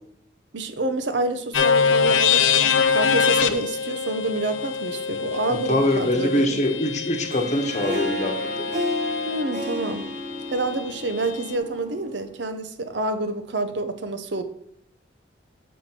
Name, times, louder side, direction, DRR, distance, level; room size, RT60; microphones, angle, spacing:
voice 1, 0.5-6.6 9.3-10.1 10.5-14.4, right 2 dB, 65° right, 8 dB, 0.8 m, -28 dB
sound 1, 1.5-9.4, left 6 dB, 85° left, 0.6 m, -24 dB
voice 2, 5.5-8.7, left 1 dB, 40° left, 4 dB, 1.1 m, -23 dB
Harp, 7.1-12.3, left 1 dB, 40° right, 0.9 m, -31 dB
7.3 x 5.7 x 4.4 m, 0.73 s
head